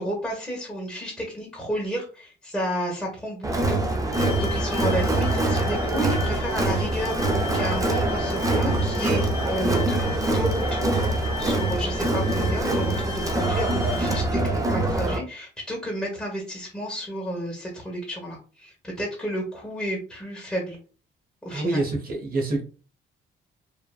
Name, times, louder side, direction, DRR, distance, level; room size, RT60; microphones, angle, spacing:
voice 1, 0.0-11.0 11.4-20.8 21.4-21.8, equal, 5° left, 1.1 m, -31 dB
Crowd, 3.4-15.2, right 2 dB, 15° right, 0.5 m, -24 dB
sound 1, 4.1-14.3, left 6 dB, 25° left, 0.9 m, -38 dB
voice 2, 21.5-22.6, right 2 dB, 45° right, 1.0 m, -26 dB
3.3 x 2.1 x 2.3 m
cardioid pair, 90°, 20 cm